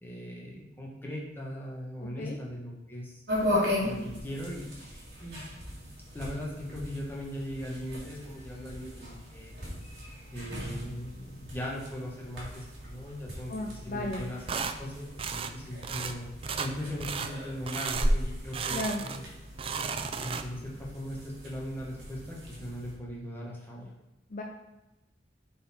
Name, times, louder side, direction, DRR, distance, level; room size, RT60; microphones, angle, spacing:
voice 1, 0.0-3.2 3.8-5.4 6.1-9.5 10.3-13.5 13.8-14.4 14.8-15.0 15.3-16.3 16.6-19.2 20.2-23.9, equal, 10° left, -4 dB, 1.3 m, -39 dB
sound 1, 3.3-22.9, equal, 55° right, 2.4 m, -37 dB
voice 2, 13.5-14.3 18.7-19.1 24.3-24.4, left 1 dB, 45° left, 1 dB, 0.5 m, -34 dB
sound 2, 14.5-14.8 15.2-15.5 15.8-16.1 16.4-16.7 17.0-17.3 17.7-18.1 18.5-19.2 19.5-20.7, right 6 dB, 30° right, 0.3 m, -34 dB
7.7 x 4.3 x 4.3 m, 0.98 s
head